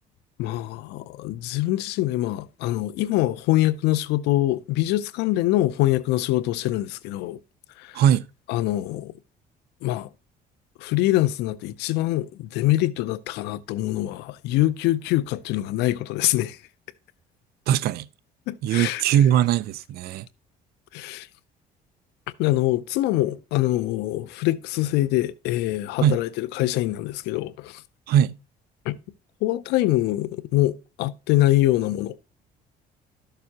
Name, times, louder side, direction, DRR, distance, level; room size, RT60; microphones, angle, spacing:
voice 1, 0.4-7.4 7.8-8.0 8.5-9.1 9.8-10.1 10.8-16.6 18.5-19.0 20.9-21.3 22.4-27.8 28.9-29.0 29.4-32.2, left 16 dB, 90° left, 0.5 m, -24 dB
voice 2, 7.9-8.3 17.7-18.1 18.6-20.3 26.0-26.2 28.1-28.4, right 10 dB, 65° right, 0.4 m, -20 dB
12.0 x 6.7 x 2.8 m
cardioid pair, 110°, 17 cm